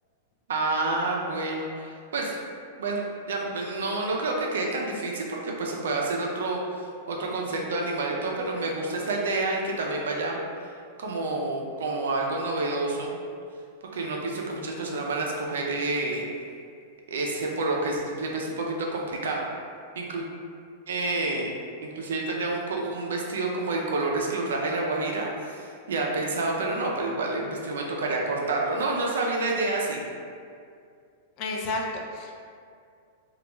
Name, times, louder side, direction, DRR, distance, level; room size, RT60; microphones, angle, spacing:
voice 1, 0.5-2.3 2.8-3.0 3.3-10.4 11.0-13.2 13.9-16.2 17.1-19.4 20.0-20.2 20.9-21.5 21.8-30.0, right 2 dB, 85° right, -1 dB, 0.4 m, -28 dB
voice 2, 31.4-32.3, left 2 dB, 45° left, 0 dB, 0.4 m, -31 dB
2.4 x 2.1 x 2.9 m, 2.3 s
hypercardioid pair, 125°, 0 cm